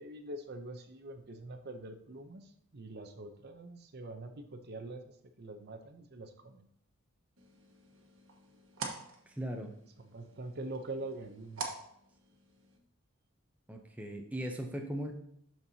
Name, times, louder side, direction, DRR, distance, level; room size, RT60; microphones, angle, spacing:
voice 1, 0.0-5.0 5.4-6.7 10.0-11.6, right 2 dB, 50° right, 7 dB, 0.7 m, -44 dB
sound 1, 7.4-12.8, right 4 dB, 70° right, 1.2 m, -46 dB
voice 2, 9.3-9.7 13.7-15.1, equal, 5° right, 2 dB, 0.6 m, -38 dB
12.0 x 4.5 x 2.8 m, 0.70 s
head